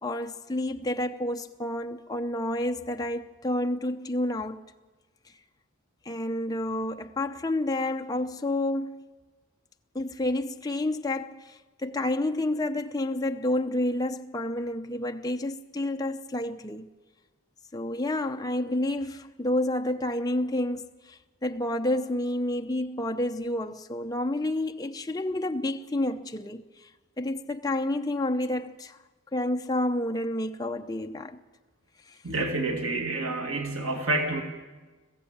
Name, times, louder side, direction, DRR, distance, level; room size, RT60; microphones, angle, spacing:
voice 1, 0.0-4.6 6.1-9.0 9.9-16.9 17.7-26.9 27.2-29.0 29.3-31.4 32.1-32.2 33.2-33.3, left 1 dB, 20° left, 0.7 m, -29 dB
voice 2, 32.2-34.4, right 2 dB, 85° right, 2.0 m, -28 dB
21.0 x 15.0 x 8.7 m
head